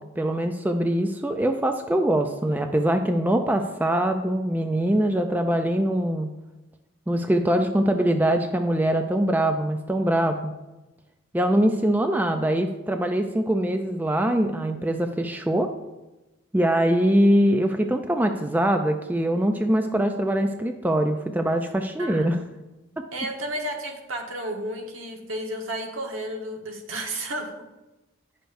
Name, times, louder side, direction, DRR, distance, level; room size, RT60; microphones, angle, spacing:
voice 1, 0.2-6.3 7.1-10.5 11.3-15.7 16.5-22.4, right 1 dB, 10° right, 5 dB, 0.3 m, -23 dB
voice 2, 22.0-22.3 23.1-27.5, right 1 dB, 75° right, 1 dB, 1.2 m, -32 dB
10.0 x 6.5 x 2.6 m, 1.0 s
head